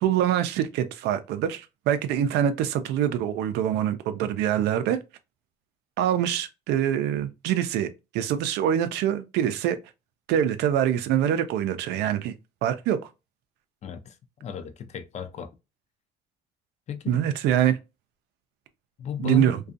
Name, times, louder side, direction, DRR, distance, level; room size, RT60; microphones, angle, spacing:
voice 1, 0.0-5.0 6.0-9.8 10.3-12.3 12.6-13.0 17.1-17.8 19.2-19.6, right 10 dB, 85° right, 0.4 m, -24 dB
voice 2, 13.8-14.1 14.4-15.5 16.9-17.2 19.0-19.6, left 8 dB, 40° left, 0.4 m, -34 dB
2.5 x 2.3 x 2.5 m
cardioid pair, 110°, 17 cm